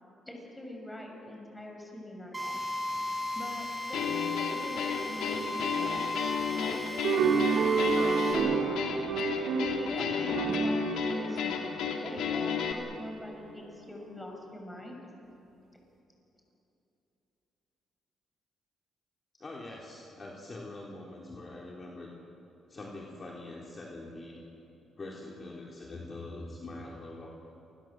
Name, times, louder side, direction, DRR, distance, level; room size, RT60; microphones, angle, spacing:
voice 1, 0.3-2.6 3.3-6.0 6.6-8.8 9.7-15.0, left 1 dB, 10° left, 1 dB, 6.6 m, -44 dB
Drill, 2.3-8.3, left 1 dB, 15° right, 7.4 m, -35 dB
sound 1, 3.9-12.7, left 7 dB, 80° left, 2.9 m, -33 dB
sound 2, 7.0-12.6, right 6 dB, 75° right, 4.0 m, -30 dB
voice 2, 19.4-22.1 22.7-24.4 25.0-27.3, left 2 dB, 35° left, -2 dB, 3.8 m, -43 dB
28.0 x 21.5 x 7.8 m, 2.9 s
cardioid pair, 90°, 0 cm